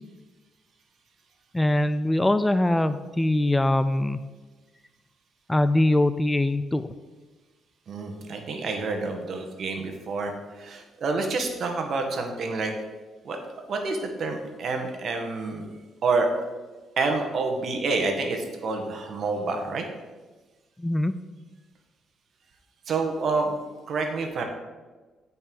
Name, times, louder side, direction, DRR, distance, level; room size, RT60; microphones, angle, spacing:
voice 1, 1.5-4.2 5.5-6.9 20.8-21.1, left 1 dB, 10° left, 12 dB, 0.4 m, -22 dB
voice 2, 7.9-12.7 13.2-13.4 13.7-15.7 16.0-16.3 17.0-19.8 22.9-23.5 23.9-24.4, right 3 dB, 60° right, 4 dB, 1.6 m, -28 dB
8.6 x 5.6 x 6.4 m, 1.3 s
cardioid pair, 90°, 0 cm